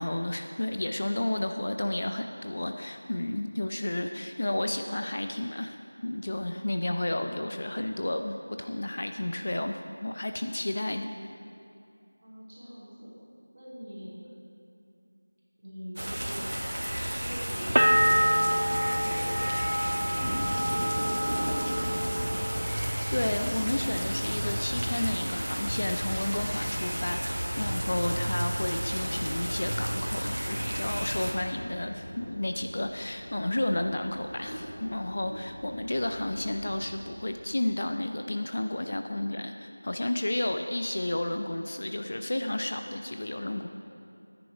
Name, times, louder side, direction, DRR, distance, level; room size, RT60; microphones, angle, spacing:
voice 1, 0.0-5.8 6.0-11.1 23.1-43.7, left 1 dB, 35° left, 6 dB, 0.5 m, -32 dB
voice 2, 12.2-13.1 13.5-14.1 15.6-16.5 17.0-21.9, equal, 30° right, -7 dB, 2.9 m, -44 dB
sound 1, 16.0-31.3, equal, 60° right, 1.7 m, -32 dB
sound 2, 17.6-36.9, equal, ahead, 1.9 m, -42 dB
sound 3, 17.8-23.4 23.7-24.4, equal, 80° right, 0.6 m, -28 dB
12.5 x 9.9 x 4.7 m, 2.6 s
figure-of-eight pair, 175°, 0 cm